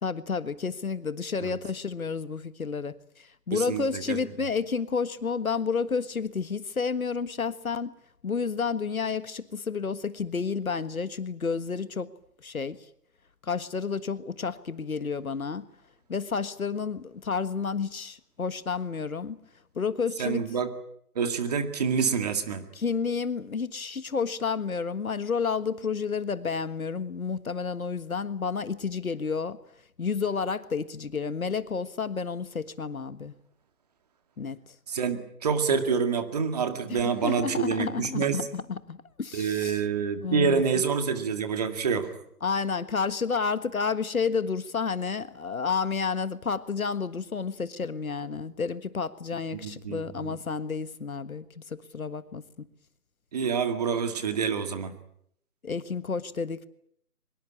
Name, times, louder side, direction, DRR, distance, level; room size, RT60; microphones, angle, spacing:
voice 1, 0.0-7.9 8.2-12.1 12.4-12.8 13.4-15.7 16.1-19.4 19.7-20.4 22.7-29.6 30.0-33.3 34.4-34.6 36.9-39.8 40.2-40.8 42.4-52.4 55.6-56.7, left 5 dB, 60° left, 14 dB, 1.6 m, -30 dB
voice 2, 3.5-4.2 20.2-20.7 21.2-22.7 34.9-38.4 39.3-42.1 49.5-50.4 53.3-55.0, right 6 dB, 25° right, 8 dB, 2.1 m, -27 dB
24.5 x 22.0 x 8.7 m, 0.70 s
figure-of-eight pair, 160°, 47 cm